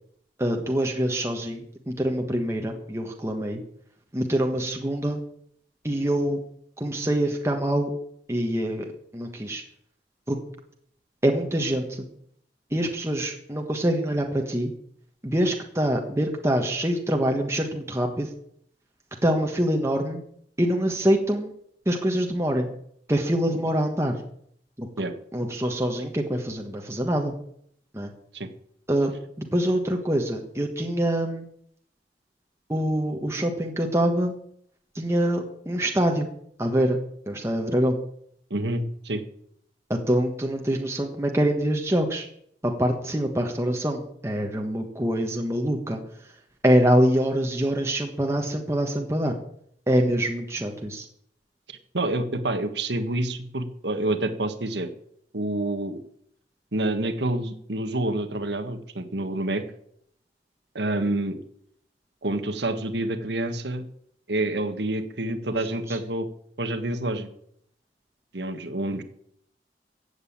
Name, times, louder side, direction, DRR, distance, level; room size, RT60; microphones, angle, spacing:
voice 1, 0.4-3.6 4.1-5.2 5.8-6.4 6.8-8.0 8.3-8.9 9.1-9.6 10.3-10.4 11.2-12.0 12.7-14.7 15.2-18.3 19.2-20.2 20.6-21.5 21.8-22.7 23.1-24.2 24.8-24.9 25.3-27.3 27.9-28.1 28.9-31.5 32.7-34.3 34.9-36.3 36.6-37.0 37.3-38.0 39.9-42.3 42.6-46.3 46.6-49.3 49.9-51.1 65.9-66.0, right 1 dB, 15° right, 2 dB, 1.4 m, -25 dB
voice 2, 38.5-39.2 51.7-54.9 55.3-56.0 56.7-59.6 60.7-61.4 62.2-63.8 64.3-66.3 66.6-67.3 68.3-69.0, right 1 dB, 75° right, 8 dB, 1.6 m, -28 dB
15.5 x 8.1 x 8.7 m, 0.69 s
head